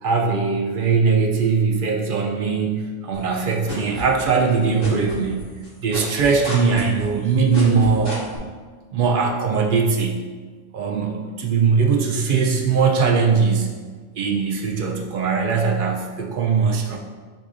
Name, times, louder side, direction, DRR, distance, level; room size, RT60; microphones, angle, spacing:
voice 1, 0.0-5.4 5.8-8.2 8.9-10.2 10.7-13.7 14.2-17.0, right 5 dB, 60° right, 1 dB, 0.6 m, -20 dB
sound 1, 3.1-4.5 4.8-8.4, left 1 dB, 20° left, 1.4 m, -32 dB
4.8 x 3.7 x 2.5 m, 1.5 s
omnidirectional pair, 1.3 m